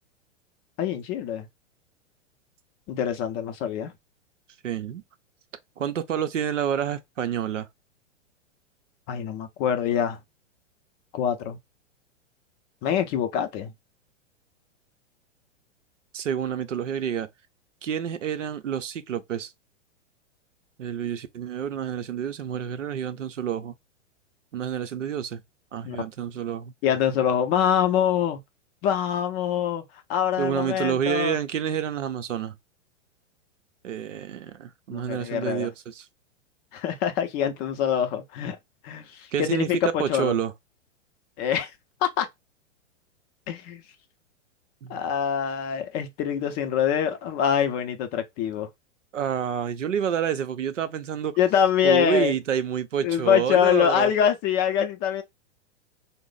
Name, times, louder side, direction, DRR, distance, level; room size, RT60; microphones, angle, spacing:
voice 1, 0.8-1.5 2.9-3.9 9.1-10.2 11.1-11.6 12.8-13.7 25.8-26.0 26.8-28.4 28.8-29.8 30.1-31.4 34.9-35.7 36.7-38.6 38.8-40.3 41.4-41.7 42.0-42.3 43.5-43.8 44.9-48.7 51.4-52.3 53.0-55.2, left 9 dB, 25° left, 0.4 m, -24 dB
voice 2, 4.6-5.0 5.8-7.7 16.1-17.3 17.8-19.5 20.8-23.7 24.5-25.4 25.7-26.7 30.4-32.5 33.8-36.1 39.3-40.5 44.8-45.0 49.1-51.4 51.8-54.1, right 8 dB, 85° right, 0.6 m, -28 dB
3.1 x 2.0 x 3.7 m
hypercardioid pair, 115°, 37 cm